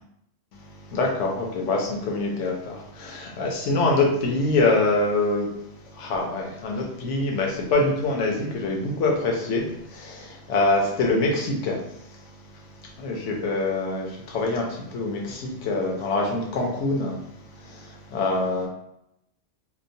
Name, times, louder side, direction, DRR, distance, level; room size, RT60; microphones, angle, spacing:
voice 1, 0.5-18.7, left 2 dB, 80° left, 0 dB, 1.0 m, -25 dB
2.9 x 2.0 x 2.6 m, 0.79 s
omnidirectional pair, 1.2 m